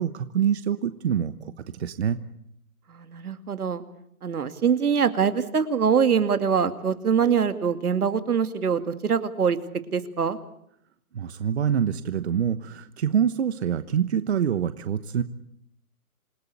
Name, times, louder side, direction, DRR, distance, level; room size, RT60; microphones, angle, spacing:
voice 1, 0.0-2.2 11.1-15.2, right 8 dB, 45° right, 12 dB, 1.1 m, -26 dB
voice 2, 2.9-3.8 4.2-9.6 9.9-10.4, right 7 dB, 75° right, 10 dB, 2.5 m, -23 dB
27.5 x 18.5 x 8.4 m, 0.74 s
hypercardioid pair, 165°, 45 cm